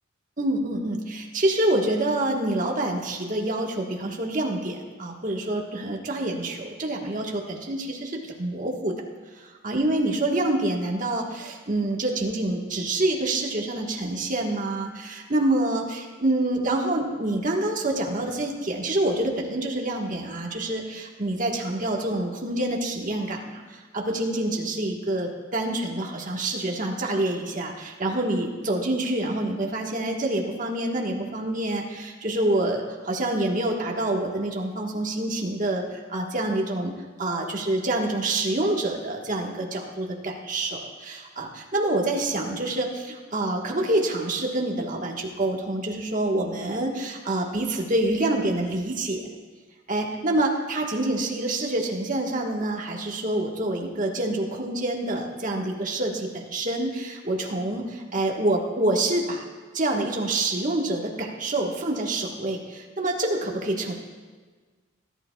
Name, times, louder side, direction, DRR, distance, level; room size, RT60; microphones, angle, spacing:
voice 1, 0.4-8.9 9.4-36.9 37.2-49.3 49.9-59.4 59.7-63.9, right 1 dB, 40° right, 0 dB, 1.4 m, -27 dB
19.0 x 11.5 x 2.3 m, 1.4 s
head